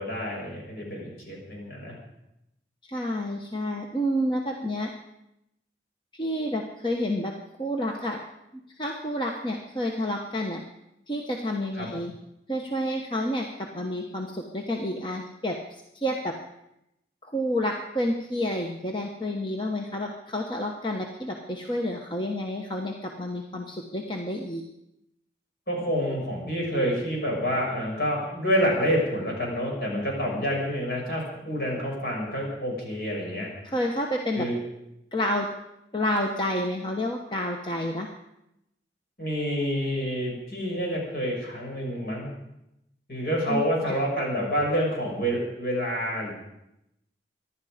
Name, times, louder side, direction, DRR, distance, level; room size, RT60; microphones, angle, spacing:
voice 1, 0.0-2.0 11.7-11.9 25.7-33.5 34.3-34.6 39.2-42.3 43.1-46.3, equal, 60° left, -2 dB, 6.5 m, -28 dB
voice 2, 2.8-4.9 6.1-7.3 7.6-8.2 8.8-10.6 11.1-12.1 12.5-16.3 17.2-24.6 33.6-34.5 35.1-35.5 35.9-38.1 43.5-43.9, left 1 dB, 25° left, 1 dB, 1.1 m, -29 dB
25.0 x 11.0 x 5.1 m, 0.85 s
head